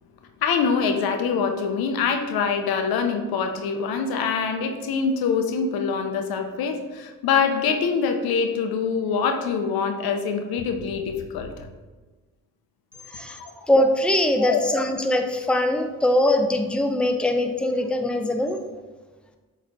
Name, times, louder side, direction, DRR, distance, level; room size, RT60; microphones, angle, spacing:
voice 1, 0.4-11.5 13.4-13.5 14.4-14.6, left 6 dB, 70° left, 6 dB, 0.7 m, -24 dB
voice 2, 13.1-13.4 13.7-18.6, left 1 dB, 5° left, 5 dB, 0.7 m, -22 dB
7.6 x 3.2 x 4.0 m, 1.3 s
hypercardioid pair, 45°, 38 cm